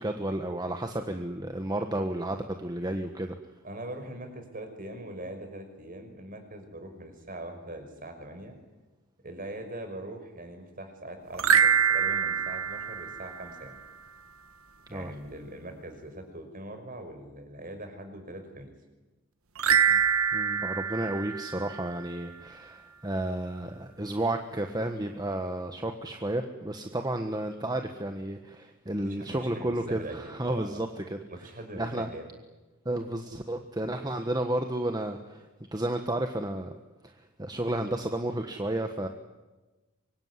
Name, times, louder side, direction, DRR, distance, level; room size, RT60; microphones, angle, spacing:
voice 1, 0.0-3.3 14.9-15.1 20.3-31.2 31.8-32.1 32.8-35.5 35.7-36.7 37.0-39.1, right 1 dB, 20° right, 5 dB, 1.4 m, -32 dB
voice 2, 3.6-8.6 9.2-13.8 14.9-18.7 29.0-30.9 31.3-32.3, right 1 dB, 40° right, 6 dB, 5.5 m, -42 dB
sound 1, 11.3-13.8 19.6-22.2, right 7 dB, 80° right, 1.4 m, -25 dB
25.5 x 23.0 x 9.8 m, 1.1 s
head